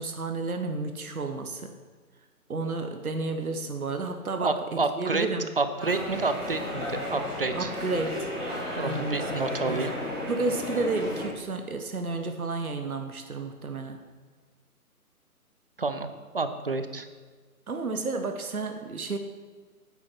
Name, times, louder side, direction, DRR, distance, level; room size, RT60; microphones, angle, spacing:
voice 1, 0.0-1.7 2.5-5.5 7.5-8.3 8.8-9.8 10.3-14.0 17.7-19.2, right 3 dB, 65° right, 6 dB, 1.1 m, -31 dB
voice 2, 4.4-5.3 5.6-7.7 8.7-9.9 15.8-16.1 16.3-17.1, right 3 dB, 40° right, 9 dB, 0.6 m, -29 dB
sound 1, 5.8-11.2, left 1 dB, 10° right, 3.8 m, -34 dB
8.7 x 7.8 x 6.0 m, 1.4 s
figure-of-eight pair, 145°, 46 cm